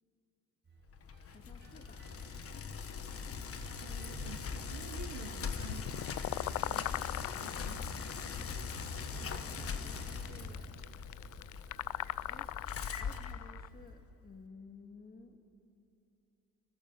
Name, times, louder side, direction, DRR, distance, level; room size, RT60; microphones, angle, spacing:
sound 1, 0.7-10.7, right 3 dB, 40° right, 3.8 m, -54 dB
Bicycle, 0.9-14.0, left 5 dB, 50° left, 1.4 m, -41 dB
voice 1, 1.3-2.1 8.4-8.6 9.1-10.7 12.3-12.6 13.0-15.5, left 4 dB, 30° left, 5 dB, 1.9 m, -55 dB
voice 2, 3.8-8.1, right 8 dB, 75° right, 5 dB, 1.2 m, -51 dB
sound 2, 5.6-13.7, left 15 dB, 75° left, 0.5 m, -40 dB
28.5 x 19.5 x 5.4 m, 2.8 s
cardioid pair, 90°, 30 cm